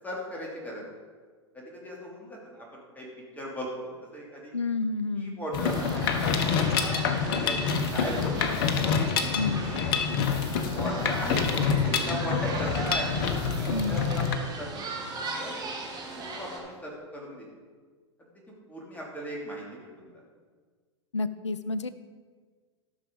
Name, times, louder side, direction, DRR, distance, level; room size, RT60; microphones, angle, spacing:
voice 1, 0.0-0.8 1.5-3.1 3.3-4.5 5.1-8.3 8.7-9.8 10.7-13.2 13.7-14.7 15.4-15.5 16.1-17.5 18.7-20.2, equal, 10° left, -3 dB, 3.0 m, -38 dB
voice 2, 4.5-5.4 9.4-9.7 13.7-14.1 21.1-21.9, left 3 dB, 85° left, 14 dB, 0.5 m, -30 dB
Mechanisms, 5.5-14.3, left 6 dB, 55° left, 1.0 m, -27 dB
sound 1, 5.6-16.6, right 3 dB, 25° right, 2.2 m, -38 dB
12.5 x 6.2 x 5.2 m, 1.5 s
figure-of-eight pair, 95°, 15 cm